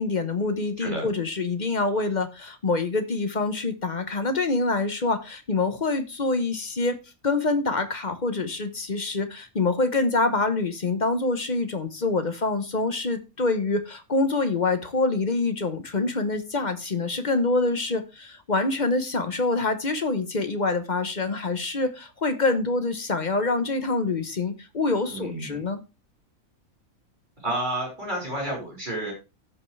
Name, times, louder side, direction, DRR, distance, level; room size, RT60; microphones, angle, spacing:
voice 1, 0.0-7.0 7.2-25.8, left 3 dB, 35° left, 1.0 m, -26 dB
voice 2, 25.1-25.6 27.4-29.1, right 1 dB, 30° right, 5.2 m, -30 dB
16.0 x 5.5 x 3.2 m
omnidirectional pair, 1.5 m